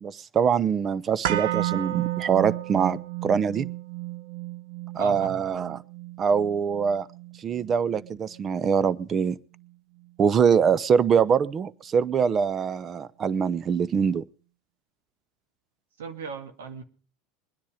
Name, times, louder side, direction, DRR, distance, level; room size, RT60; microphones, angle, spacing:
voice 1, 0.0-3.7 4.9-5.8 6.2-7.1 7.4-9.4 10.2-14.2, right 7 dB, 35° right, 19 dB, 0.8 m, -24 dB
sound 1, 1.2-9.3 9.6-9.7, right 15 dB, 70° right, 0.8 m, -33 dB
voice 2, 5.0-5.5 16.0-16.8, right 5 dB, 85° right, 7 dB, 2.0 m, -37 dB
21.0 x 10.5 x 5.0 m, 0.38 s
hypercardioid pair, 95°, 0 cm